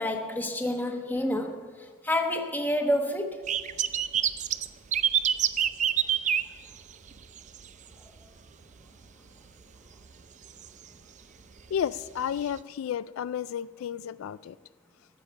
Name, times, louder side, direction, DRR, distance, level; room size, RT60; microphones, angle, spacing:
voice 1, 0.0-3.4, left 1 dB, 10° left, 4 dB, 1.1 m, -29 dB
sound 1, 3.5-7.7 7.9-8.3 8.7-8.8 10.0-10.2 10.6-10.7 11.8-11.9 12.6-12.7, right 9 dB, 35° right, 0.4 m, -26 dB
voice 2, 11.7-14.6, left 8 dB, 80° left, 17 dB, 0.3 m, -32 dB
15.0 x 7.0 x 8.8 m, 1.5 s
head